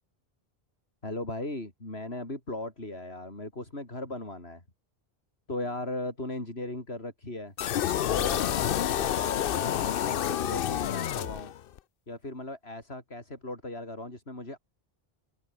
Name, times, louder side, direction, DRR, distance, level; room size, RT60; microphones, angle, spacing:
voice 1, 1.0-4.6 5.5-7.5 8.1-11.5 12.1-14.6, left 2 dB, 85° left, 5.7 m, -38 dB
sound 1, 7.6-11.8, left 11 dB, 65° left, 0.8 m, -28 dB
open air
omnidirectional pair, 1.0 m